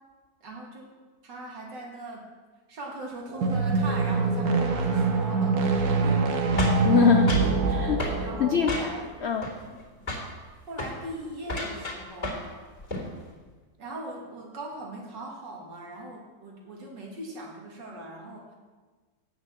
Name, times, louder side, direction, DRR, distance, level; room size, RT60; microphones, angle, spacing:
voice 1, 0.4-0.9 1.2-2.3 2.7-5.6 5.9-6.2 8.2-9.1 9.6-10.1 10.7-12.5 13.8-18.5, right 1 dB, 85° right, -1 dB, 2.6 m, -40 dB
sound 1, 3.3-8.9, right 4 dB, 65° right, 1.5 m, -25 dB
sound 2, 6.6-7.5 8.0-8.2 8.7-9.1 9.4-9.8 10.1-10.3 10.7-11.0 11.4-12.5 12.8-13.1, left 1 dB, 25° left, 3.0 m, -32 dB
voice 2, 6.8-8.1 8.4-8.7 9.2-9.5, left 6 dB, 80° left, 6 dB, 0.5 m, -23 dB
9.0 x 6.5 x 7.6 m, 1.3 s
omnidirectional pair, 1.9 m